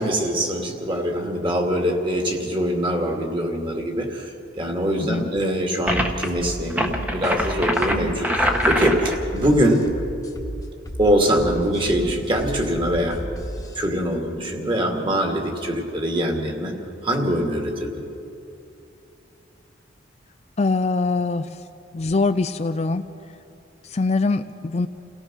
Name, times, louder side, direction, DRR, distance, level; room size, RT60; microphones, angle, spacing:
voice 1, 0.0-4.2 4.5-9.9 11.0-13.2 13.8-16.7 17.0-18.0, equal, 25° right, 2 dB, 2.4 m, -23 dB
voice 2, 5.0-5.3 20.6-21.5 21.9-23.1 23.9-24.9, left 3 dB, 35° left, 10 dB, 0.4 m, -23 dB
sound 1, 5.9-13.8, equal, 20° left, 1.4 m, -33 dB
sound 2, 5.9-6.3 6.7-9.2, equal, 10° right, 1.3 m, -23 dB
29.5 x 17.5 x 6.3 m, 2.8 s
head